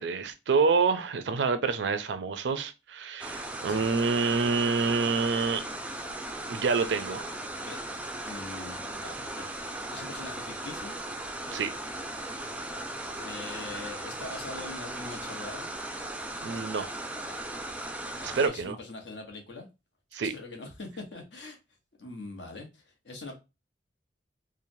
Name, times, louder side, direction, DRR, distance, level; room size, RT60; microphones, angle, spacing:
voice 1, 0.0-5.6 6.5-7.2 11.5-11.7 16.4-16.9 18.2-18.8 20.1-20.3, right 4 dB, 75° right, 0.4 m, -27 dB
sound 1, 3.2-18.5, right 1 dB, 10° right, 0.3 m, -37 dB
voice 2, 8.2-11.0 13.2-15.7 18.4-19.7 20.2-21.6 22.0-23.4, left 3 dB, 75° left, 0.9 m, -42 dB
3.1 x 2.1 x 2.6 m
head